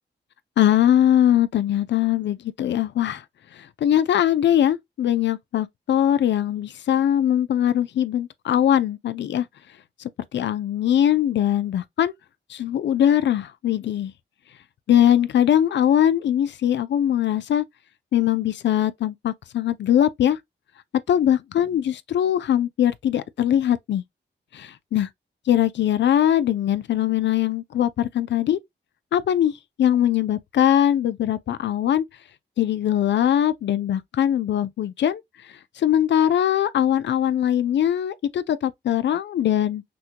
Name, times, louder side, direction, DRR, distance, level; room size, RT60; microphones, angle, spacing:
voice 1, 0.6-3.2 3.5-9.5 10.3-12.1 12.5-14.1 14.9-17.6 18.1-20.4 21.1-24.0 24.5-25.1 25.5-28.6 29.1-29.5 29.8-32.0 32.6-39.8, left 10 dB, 85° left, 0.4 m, -21 dB
6.0 x 2.2 x 2.7 m
cardioid pair, 70°, 18 cm